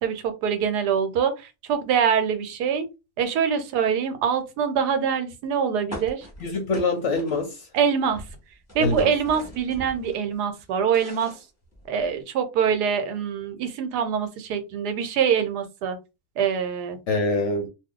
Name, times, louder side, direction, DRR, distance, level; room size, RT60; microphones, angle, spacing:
voice 1, 0.0-2.9 3.2-6.3 7.7-8.2 8.7-11.3 11.9-16.0 16.4-17.0, right 7 dB, 80° right, 1.2 m, -24 dB
sound 1, 5.9-7.8 8.0-10.2 10.6-12.2, equal, 10° left, 0.8 m, -40 dB
voice 2, 6.4-7.7 8.8-9.1 17.1-17.7, left 3 dB, 60° left, 0.8 m, -25 dB
2.6 x 2.3 x 3.6 m
omnidirectional pair, 1.7 m